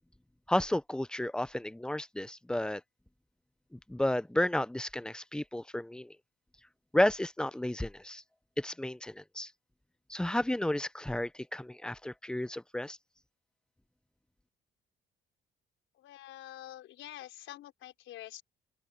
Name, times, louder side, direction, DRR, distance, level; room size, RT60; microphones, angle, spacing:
voice 1, 0.5-2.8 3.7-6.1 6.9-8.2 8.6-9.5 10.1-13.0, left 1 dB, 5° left, 0.7 m, -32 dB
voice 2, 16.0-18.4, left 14 dB, 85° left, 5.5 m, -47 dB
open air
cardioid pair, 90°, 20 cm